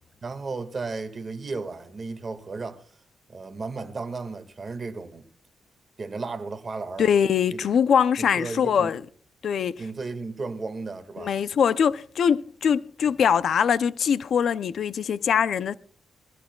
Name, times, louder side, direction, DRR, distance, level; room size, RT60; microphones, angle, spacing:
voice 1, 0.2-2.9 3.3-5.2 6.0-7.1 7.5-7.7 8.2-8.9 9.8-11.3, right 3 dB, 35° right, 1.8 m, -34 dB
voice 2, 7.0-9.0 9.4-9.8 11.2-15.7, left 7 dB, 70° left, 0.5 m, -22 dB
21.5 x 15.0 x 2.3 m
cardioid pair, 115°, 0 cm